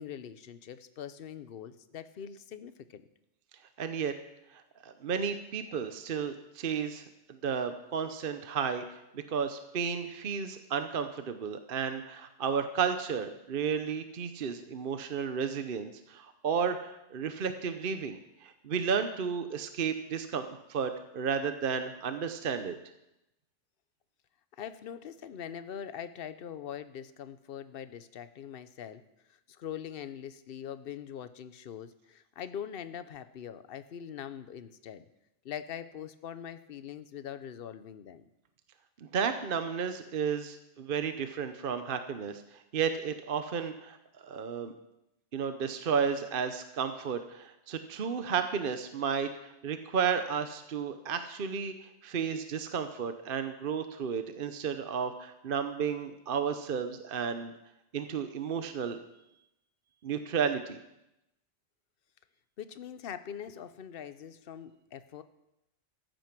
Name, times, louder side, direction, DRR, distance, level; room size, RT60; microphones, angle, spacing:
voice 1, 0.0-3.0 24.6-29.0 29.3-35.0 35.4-38.3 62.6-65.2, left 9 dB, 55° left, 12 dB, 0.9 m, -42 dB
voice 2, 3.8-4.1 4.5-7.0 7.3-22.7 39.0-44.0 44.2-44.7 45.3-57.5 57.9-59.0 60.0-60.8, right 6 dB, 50° right, 8 dB, 0.9 m, -33 dB
14.5 x 9.1 x 6.0 m, 0.90 s
omnidirectional pair, 1.3 m